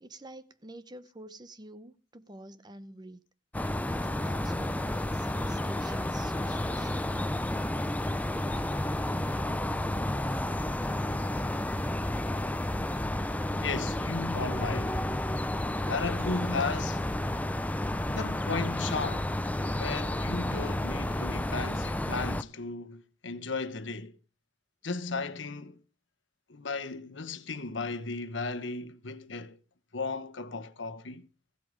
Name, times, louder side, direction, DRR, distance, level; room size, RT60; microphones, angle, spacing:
voice 1, 0.0-3.2 3.9-7.1, right 1 dB, 25° right, 0.8 m, -48 dB
sound 1, 3.5-22.4, left 1 dB, 10° left, 0.5 m, -31 dB
voice 2, 13.6-15.0 15.8-17.1 18.1-24.2 24.8-25.8 26.5-29.6 29.9-31.3, left 4 dB, 85° left, 1.1 m, -35 dB
15.0 x 8.4 x 5.2 m
head